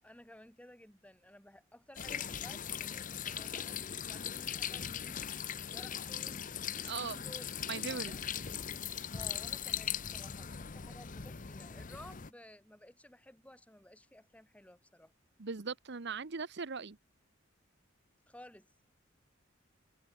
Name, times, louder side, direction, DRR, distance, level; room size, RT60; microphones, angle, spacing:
voice 1, 0.0-5.3 5.6-6.5 6.9-7.6 7.9-8.2 9.1-15.1 18.3-18.7, left 1 dB, 5° left, 3.0 m, -55 dB
sound 1, 2.0-12.3, left 8 dB, 40° left, 0.8 m, -40 dB
voice 2, 6.8-7.2 7.7-8.1 15.4-17.0, right 5 dB, 60° right, 0.9 m, -39 dB
head